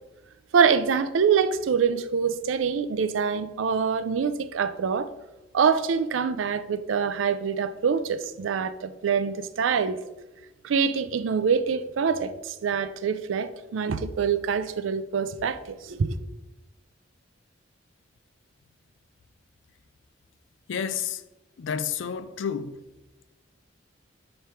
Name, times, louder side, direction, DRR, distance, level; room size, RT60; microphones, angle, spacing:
voice 1, 0.5-5.1 5.5-10.0 10.6-16.2, right 6 dB, 90° right, 0.4 m, -25 dB
voice 2, 20.7-21.2 21.6-22.9, left 7 dB, 75° left, 0.4 m, -30 dB
6.8 x 3.3 x 4.4 m
head